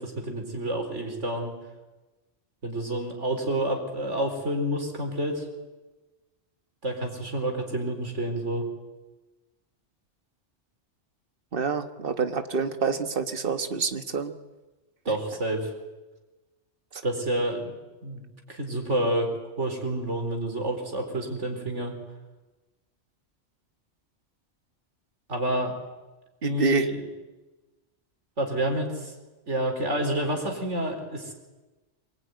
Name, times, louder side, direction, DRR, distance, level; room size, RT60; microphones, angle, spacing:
voice 1, 0.0-1.5 2.6-5.5 6.8-8.7 15.0-15.7 17.0-17.7 18.0-19.3 19.6-22.0 25.3-25.8 26.4-27.0 28.4-29.1 29.5-31.3, right 1 dB, 80° right, 3 dB, 4.5 m, -29 dB
voice 2, 11.5-14.3 16.9-17.0 26.4-26.9, right 4 dB, 50° right, 8 dB, 1.5 m, -27 dB
25.0 x 20.5 x 9.5 m, 1.2 s
omnidirectional pair, 1.2 m